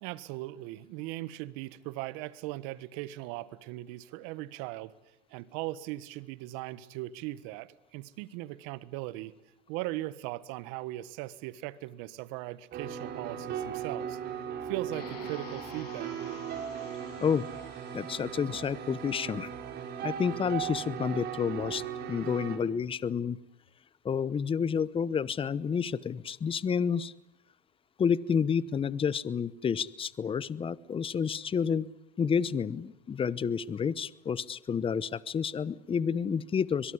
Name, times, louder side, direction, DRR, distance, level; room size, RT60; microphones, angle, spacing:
voice 1, 0.0-4.9 5.3-9.3 9.7-14.2 14.6-16.6, right 17 dB, 70° right, 17 dB, 1.5 m, -39 dB
sound 1, 12.7-22.6, right 8 dB, 55° right, 4.2 m, -38 dB
sound 2, 14.9-19.9, left 7 dB, 85° left, 6.7 m, -51 dB
voice 2, 17.2-17.5 17.9-19.5 20.0-21.8 22.1-23.4 24.0-27.1 28.0-31.9 32.2-36.9, left 6 dB, 25° left, 20 dB, 0.9 m, -30 dB
23.0 x 22.5 x 9.8 m, 0.81 s
supercardioid pair, 90°, 20 cm